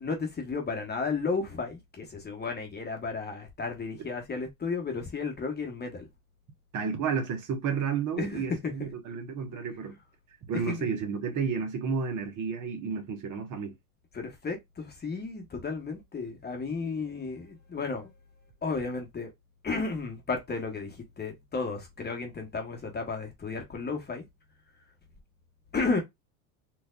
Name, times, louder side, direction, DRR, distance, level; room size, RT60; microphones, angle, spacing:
voice 1, 0.0-6.1 8.2-8.9 10.7-10.9 14.1-18.1 18.6-19.3 19.6-24.2 25.7-26.0, left 4 dB, 20° left, 1.2 m, -33 dB
voice 2, 6.7-9.9 10.5-13.7, right 6 dB, 40° right, 1.3 m, -31 dB
4.5 x 2.6 x 2.4 m
supercardioid pair, 105°, 46 cm